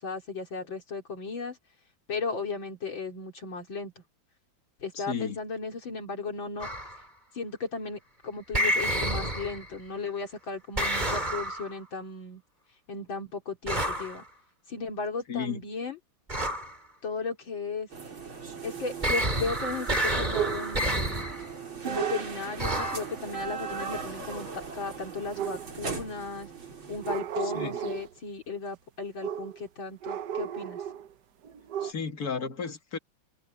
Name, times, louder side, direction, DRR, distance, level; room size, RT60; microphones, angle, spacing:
voice 1, 0.0-1.6 2.1-4.0 4.8-6.7 7.3-12.4 12.9-14.2 14.7-16.0 17.0-17.9 18.6-21.3 21.8-24.5 24.7-26.5 26.9-30.9, left 4 dB, 70° left, 4.1 m, -35 dB
voice 2, 4.9-5.4 15.3-15.6 27.4-27.8 31.8-33.0, left 6 dB, 50° left, 2.4 m, -33 dB
sound 1, 6.6-7.0 8.5-9.8 10.8-11.8 13.7-14.2 16.3-16.8 19.0-21.5 22.6-23.1, right 1 dB, 20° right, 3.3 m, -29 dB
sound 2, 17.9-27.2, right 5 dB, 80° right, 5.1 m, -39 dB
sound 3, 20.3-20.9 21.9-22.4 25.3-26.0 27.0-28.1 29.2-29.6 30.0-31.1 31.4-31.9, right 9 dB, 60° right, 1.4 m, -34 dB
omnidirectional pair, 2.2 m